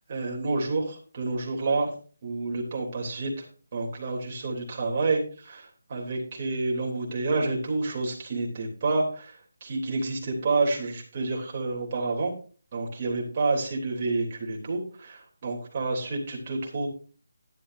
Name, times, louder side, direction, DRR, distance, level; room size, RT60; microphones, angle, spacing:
voice 1, 0.1-1.9 2.2-3.4 3.7-12.3 12.7-16.9, right 3 dB, 30° right, -1 dB, 3.1 m, -29 dB
12.5 x 11.0 x 2.7 m, 0.39 s
hypercardioid pair, 175°, 0 cm